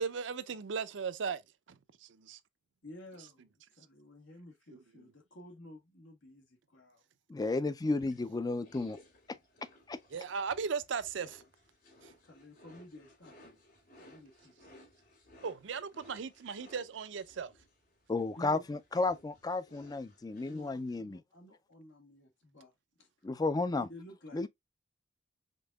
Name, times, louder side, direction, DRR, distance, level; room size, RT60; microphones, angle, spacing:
voice 1, 0.0-1.4 2.0-2.4 4.7-5.0 10.1-11.4 15.4-17.5, right 5 dB, 70° right, 0.5 m, -37 dB
voice 2, 2.8-3.5 3.8-7.0 12.2-13.6 14.0-14.7 18.4-18.7 20.4-22.7 23.0-23.1 23.8-24.5, left 1 dB, 85° left, 1.5 m, -53 dB
voice 3, 7.3-9.0 9.3-9.4 9.9-10.0 18.1-21.2 23.2-23.9 24.3-24.5, left 3 dB, 20° left, 0.3 m, -33 dB
sound 1, 7.9-21.0, left 1 dB, 55° left, 2.8 m, -60 dB
5.2 x 3.6 x 2.3 m
head